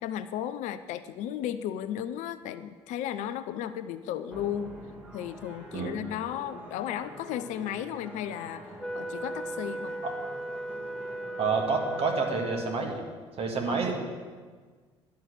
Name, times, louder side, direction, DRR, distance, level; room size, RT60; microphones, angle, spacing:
voice 1, 0.0-4.7 5.1-9.9 13.7-13.8, left 10 dB, 55° left, 12 dB, 0.5 m, -34 dB
sound 1, 4.3-12.2, right 2 dB, 10° right, 1.9 m, -46 dB
Wind instrument woodwind instrument, 8.8-13.2, right 1 dB, 5° left, 0.6 m, -37 dB
voice 2, 11.4-13.0 13.4-13.9, right 4 dB, 40° right, 1 dB, 1.9 m, -28 dB
10.5 x 6.4 x 7.7 m, 1.5 s
figure-of-eight pair, 55°, 15 cm